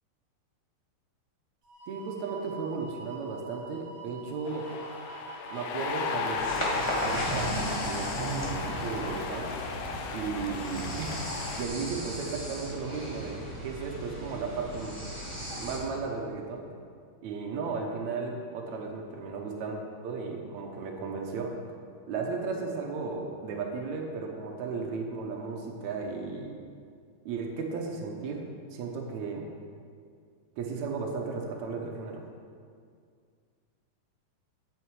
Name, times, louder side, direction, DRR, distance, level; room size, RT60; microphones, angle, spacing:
sound 1, 1.6-9.2, right 6 dB, 35° right, 3.1 m, -46 dB
voice 1, 1.9-4.7 5.5-7.6 7.9-9.5 10.1-11.2 11.6-15.0 15.5-16.7 17.2-21.5 22.1-26.6 27.3-28.4 28.7-29.5 30.6-32.2, right 4 dB, 75° right, 1 dB, 1.7 m, -35 dB
sound 2, 4.4-11.6, left 5 dB, 75° left, 2.0 m, -35 dB
sound 3, 6.3-15.8, right 1 dB, 45° left, 0.3 m, -36 dB
9.3 x 9.2 x 4.7 m, 2.2 s
omnidirectional pair, 4.5 m